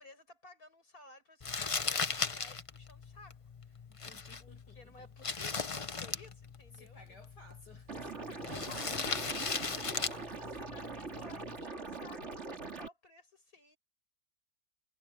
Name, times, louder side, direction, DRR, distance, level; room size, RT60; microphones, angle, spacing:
voice 1, 0.0-3.8 4.4-7.2 8.3-13.8, left 2 dB, 60° left, 8.6 m, -56 dB
Crumpling crinkling, 1.4-11.6, left 4 dB, 35° left, 0.5 m, -38 dB
voice 2, 3.9-5.1 6.7-8.8, left 1 dB, 80° left, 7.4 m, -58 dB
Liquid, 7.9-12.9, right 3 dB, 40° right, 2.9 m, -42 dB
omnidirectional pair, 1.8 m